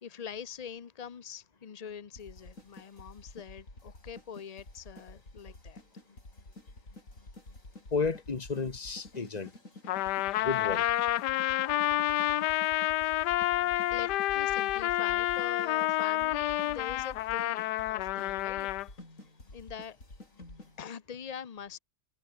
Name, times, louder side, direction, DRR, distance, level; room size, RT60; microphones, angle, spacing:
voice 1, 0.0-5.8 13.9-19.0 19.5-20.0 20.8-21.8, left 7 dB, 70° left, 0.3 m, -44 dB
sound 1, 2.1-20.8, left 2 dB, 50° left, 6.5 m, -50 dB
voice 2, 7.9-9.5 10.4-10.8, left 4 dB, 25° left, 1.2 m, -32 dB
Trumpet, 9.9-18.9, left 15 dB, 90° left, 1.2 m, -29 dB
omnidirectional pair, 1.8 m